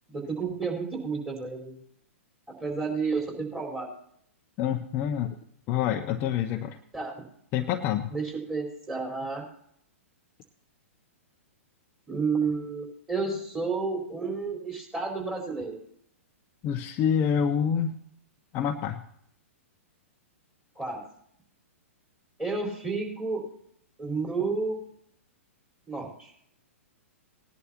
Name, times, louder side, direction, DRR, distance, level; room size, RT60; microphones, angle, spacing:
voice 1, 0.1-1.8 2.6-3.9 6.9-7.2 8.1-9.5 12.1-15.8 20.7-21.0 22.4-23.4 24.0-24.8 25.9-26.3, right 4 dB, 10° right, -2 dB, 4.7 m, -31 dB
voice 2, 4.6-5.4 5.7-6.8 7.5-8.1 16.6-17.9 18.5-19.0, left 8 dB, 30° left, 6 dB, 0.8 m, -27 dB
19.5 x 11.0 x 2.9 m, 0.70 s
figure-of-eight pair, 110°, 7 cm